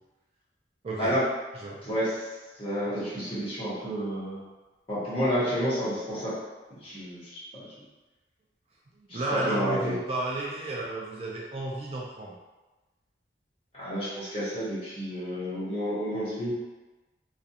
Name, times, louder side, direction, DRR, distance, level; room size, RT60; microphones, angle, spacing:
voice 1, 0.8-1.2 1.6-1.8 9.0-12.4, right 2 dB, 35° right, -4 dB, 0.3 m, -32 dB
voice 2, 1.8-2.3 2.6-4.4 4.9-6.4 6.8-7.7 9.1-9.9 13.7-16.5, equal, 30° left, -11 dB, 1.1 m, -30 dB
2.4 x 2.3 x 2.7 m, 1.2 s
head